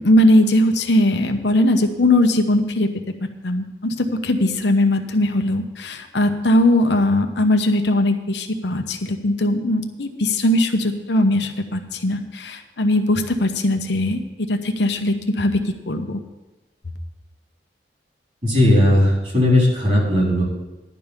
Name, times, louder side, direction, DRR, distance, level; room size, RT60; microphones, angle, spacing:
voice 1, 0.0-2.9 3.4-15.6 15.9-16.2, left 1 dB, 75° left, 6 dB, 1.0 m, -19 dB
voice 2, 18.4-20.4, left 1 dB, 40° right, -4 dB, 4.1 m, -16 dB
11.0 x 5.4 x 8.2 m, 1.0 s
head